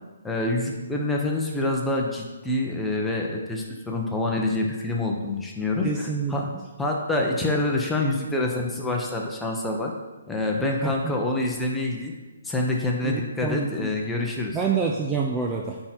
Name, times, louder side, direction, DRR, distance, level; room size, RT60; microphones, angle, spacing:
voice 1, 0.2-5.9 6.3-6.5 6.8-9.9 10.3-12.1 12.4-14.6, left 2 dB, 5° left, -1 dB, 1.0 m, -26 dB
voice 2, 5.8-6.3 10.8-11.1 13.0-13.9 14.5-15.8, right 5 dB, 15° right, -1 dB, 0.6 m, -27 dB
9.8 x 3.9 x 4.5 m, 1.2 s
hypercardioid pair, 140°, 0 cm